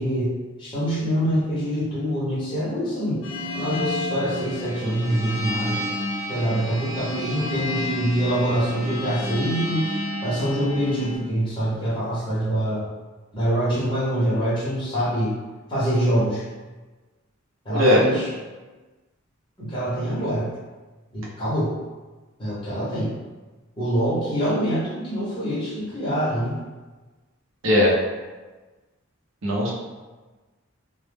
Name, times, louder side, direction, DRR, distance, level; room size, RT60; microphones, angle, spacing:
voice 1, 0.0-3.2 3.5-5.8 6.3-9.8 10.2-12.9 13.3-15.4 15.7-16.5 17.6-18.3 19.6-20.5 21.1-21.7 22.4-23.2 23.8-26.6, equal, 25° left, -9 dB, 0.7 m, -25 dB
sound 1, 3.2-11.2, left 1 dB, 65° left, 0.6 m, -31 dB
voice 2, 17.7-18.0 27.6-28.0 29.4-29.7, left 1 dB, 70° right, -4 dB, 0.6 m, -18 dB
2.0 x 2.0 x 3.2 m, 1.3 s
head